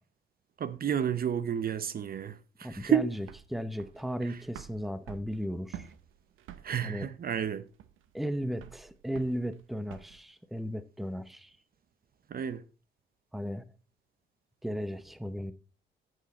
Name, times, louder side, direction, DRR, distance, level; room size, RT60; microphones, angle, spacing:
voice 1, 0.6-3.0 6.6-7.6 12.3-12.6, right 8 dB, 50° right, 0.8 m, -30 dB
voice 2, 2.6-5.9 6.8-7.1 8.1-11.6 13.3-13.6 14.6-15.5, equal, ahead, 0.8 m, -35 dB
sound 1, 2.7-10.2, right 11 dB, 90° right, 0.9 m, -49 dB
14.0 x 6.4 x 4.3 m
cardioid pair, 90°, 20 cm